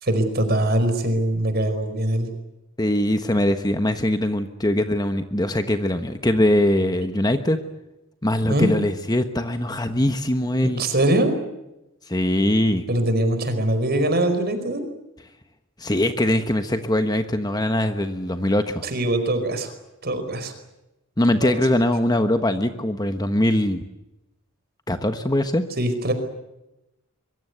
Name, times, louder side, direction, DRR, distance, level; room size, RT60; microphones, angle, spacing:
voice 1, 0.0-2.3 8.5-8.7 10.6-11.4 12.9-14.9 18.8-19.7 20.0-20.5 21.4-21.5 25.8-26.1, right 1 dB, 45° right, 8 dB, 4.8 m, -22 dB
voice 2, 2.8-7.6 8.2-10.8 12.1-12.8 15.8-18.8 21.2-23.8 24.9-25.7, left 1 dB, 20° left, 8 dB, 1.2 m, -22 dB
24.5 x 23.5 x 8.1 m, 0.94 s
head